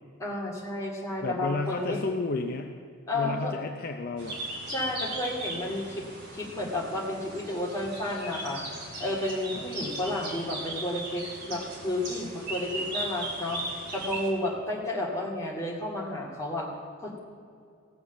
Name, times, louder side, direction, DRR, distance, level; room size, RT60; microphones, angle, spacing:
voice 1, 0.2-2.0 3.1-3.5 4.7-6.1 6.3-8.6 9.0-13.6 13.9-16.7 17.0-17.2, left 1 dB, 15° left, -3 dB, 2.3 m, -32 dB
voice 2, 1.2-2.7 3.1-4.4 9.5-9.6, left 3 dB, 45° left, 4 dB, 0.6 m, -32 dB
sound 1, 4.2-14.3, right 1 dB, 50° right, 3.1 m, -37 dB
17.0 x 6.8 x 7.1 m, 2.3 s
head